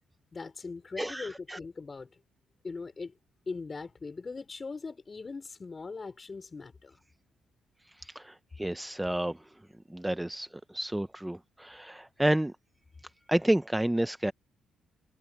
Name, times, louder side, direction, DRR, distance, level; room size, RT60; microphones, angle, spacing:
voice 1, 0.3-2.1 2.6-3.1 3.5-7.0, left 4 dB, 30° left, 4.7 m, -40 dB
voice 2, 1.0-1.6 7.9-9.5 9.9-12.5 13.3-14.3, right 1 dB, 5° right, 0.6 m, -30 dB
cardioid pair, 90°, 0 cm